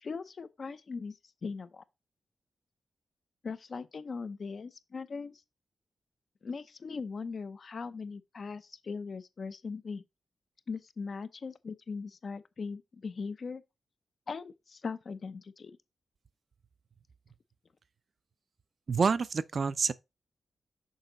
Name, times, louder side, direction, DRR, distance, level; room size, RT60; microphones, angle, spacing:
voice 1, 0.0-1.8 3.4-5.4 6.4-10.0 10.7-13.6 14.3-15.7, left 4 dB, 55° left, 0.6 m, -40 dB
voice 2, 18.9-19.9, right 5 dB, 55° right, 0.4 m, -27 dB
6.4 x 4.8 x 3.9 m
cardioid pair, 85°, 0 cm